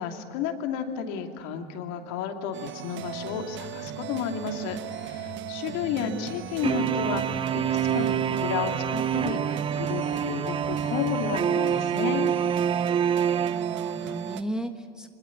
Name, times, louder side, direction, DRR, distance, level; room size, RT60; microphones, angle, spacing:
voice 1, 0.0-12.3, left 7 dB, 55° left, 4 dB, 2.8 m, -32 dB
sound 1, 2.5-14.4, right 11 dB, 40° right, 1.2 m, -38 dB
sound 2, 3.0-10.3, left 7 dB, 70° left, 5.1 m, -48 dB
voice 2, 5.7-6.3 13.5-15.1, right 1 dB, ahead, 6 dB, 1.2 m, -36 dB
sound 3, 6.6-14.4, right 8 dB, 15° right, 0.5 m, -27 dB
25.0 x 21.0 x 8.5 m, 2.2 s
hypercardioid pair, 95°, 31 cm